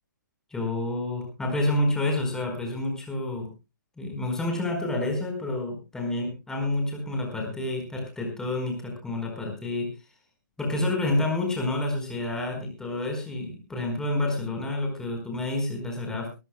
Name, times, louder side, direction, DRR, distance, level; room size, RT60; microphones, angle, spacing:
voice 1, 0.5-3.5 4.0-9.9 10.6-16.3, left 2 dB, 5° left, 3 dB, 4.5 m, -29 dB
23.0 x 14.0 x 2.2 m, 0.27 s
figure-of-eight pair, 130°, 11 cm